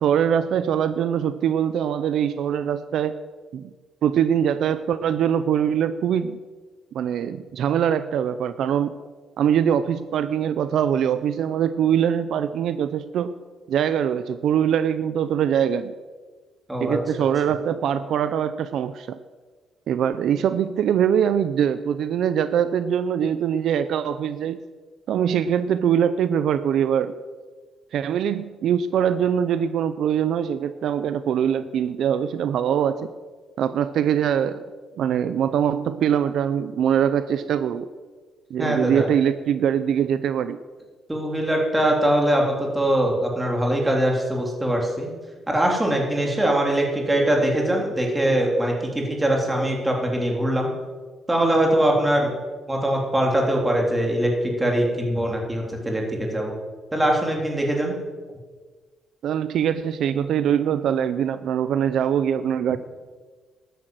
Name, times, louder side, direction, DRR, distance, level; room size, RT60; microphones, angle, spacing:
voice 1, 0.0-3.2 3.5-3.7 4.0-6.4 6.9-9.0 9.4-13.3 13.7-15.9 16.8-19.2 19.9-24.6 25.1-27.1 27.9-33.1 33.6-34.6 35.0-37.9 38.5-40.6 59.2-62.8, right 9 dB, 65° right, 12 dB, 0.6 m, -23 dB
voice 2, 38.6-39.1 41.1-45.1 45.5-50.7 51.3-52.4 52.7-56.5 56.9-58.0, right 1 dB, 10° right, 0 dB, 3.4 m, -22 dB
12.5 x 10.5 x 7.8 m, 1.4 s
cardioid pair, 130°, 0 cm